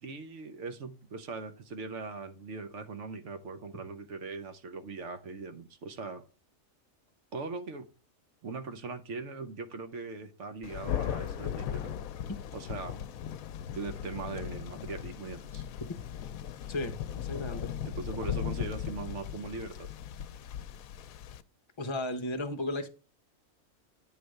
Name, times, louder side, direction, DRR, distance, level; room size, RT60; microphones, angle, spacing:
voice 1, 0.0-6.3 7.3-7.9 8.4-11.9 12.5-13.0 13.7-15.7 17.8-19.9, right 4 dB, 65° right, 1.1 m, -40 dB
Thunder, 10.6-21.4, left 9 dB, 85° left, 1.0 m, -37 dB
voice 2, 16.7-17.7 21.8-22.9, left 1 dB, 25° left, 0.8 m, -35 dB
9.2 x 3.3 x 6.3 m
omnidirectional pair, 1.4 m